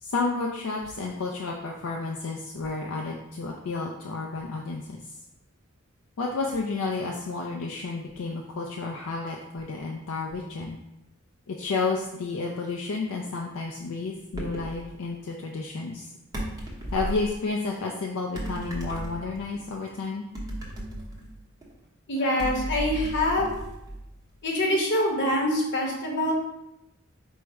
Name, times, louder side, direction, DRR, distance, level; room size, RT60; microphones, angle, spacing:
voice 1, 0.0-5.2 6.2-10.8 11.5-16.1 16.9-20.2, left 3 dB, 75° left, 0 dB, 0.4 m, -31 dB
sound 1, 14.3-14.8 16.3-17.3 18.4-19.6 20.4-21.7 22.4-24.3, right 1 dB, 15° right, 0.8 m, -35 dB
voice 2, 22.1-23.5 24.4-26.3, left 1 dB, 55° left, -1 dB, 0.9 m, -25 dB
4.6 x 2.1 x 4.6 m, 0.89 s
head